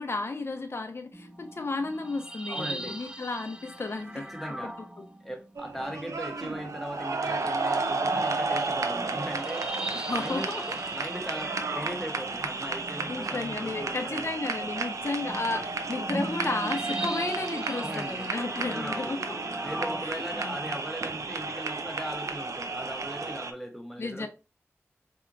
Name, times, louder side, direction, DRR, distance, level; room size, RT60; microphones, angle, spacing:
voice 1, 0.0-4.2 4.6-4.7 9.9-10.6 13.1-19.4 20.1-20.6 24.0-24.3, left 3 dB, 55° left, 0.6 m, -33 dB
sound 1, 1.1-5.6 6.7-6.8 7.9-20.1, right 1 dB, 15° right, 0.4 m, -40 dB
voice 2, 2.5-3.0 4.1-4.8 5.2-9.7 10.0-14.3 17.6-18.3 18.5-19.2 19.6-24.3, equal, ahead, 1.0 m, -39 dB
sound 2, 5.6-23.5, right 3 dB, 90° right, 0.4 m, -32 dB
4.3 x 2.8 x 2.5 m
wide cardioid pair, 50°, 5 cm